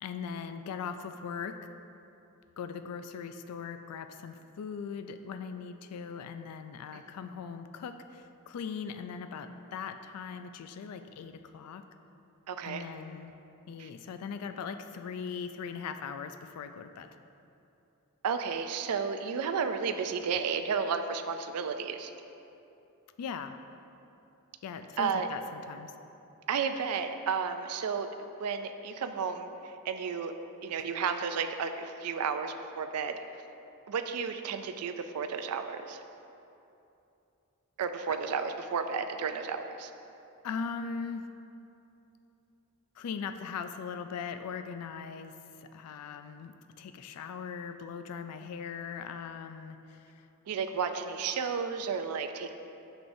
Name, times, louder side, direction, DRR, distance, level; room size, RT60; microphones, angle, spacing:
voice 1, 0.0-1.6 2.6-11.8 12.6-13.3 13.7-17.1 23.2-23.6 24.6-25.9 38.1-38.2 40.4-41.3 43.0-45.3 45.7-50.3, left 6 dB, 90° left, 8 dB, 0.3 m, -40 dB
voice 2, 12.5-12.8 13.8-13.9 18.2-22.1 25.0-25.3 26.5-30.3 30.6-33.4 33.9-36.0 37.8-39.9 50.5-52.6, right 6 dB, 80° right, 7 dB, 0.4 m, -32 dB
9.3 x 6.2 x 2.6 m, 2.8 s
head